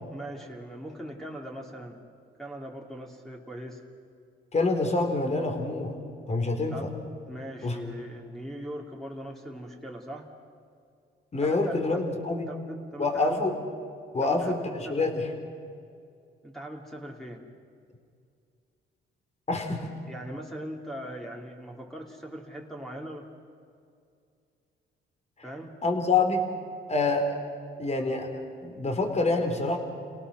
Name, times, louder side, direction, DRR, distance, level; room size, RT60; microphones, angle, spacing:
voice 1, 0.1-2.0 2.4-3.8 6.7-6.9 7.3-10.3 11.4-12.0 12.5-13.4 14.2-15.3 16.4-17.5 19.8-23.3 25.4-25.8, equal, ahead, 0 dB, 2.9 m, -40 dB
voice 2, 4.5-5.9 6.3-6.9 7.6-7.8 11.3-12.5 13.0-13.5 14.1-15.3 19.5-19.9 25.8-26.4 26.9-27.4 27.8-28.3 28.6-29.8, left 3 dB, 35° left, 4 dB, 3.8 m, -26 dB
29.0 x 18.0 x 6.3 m, 2.4 s
cardioid pair, 90°, 20 cm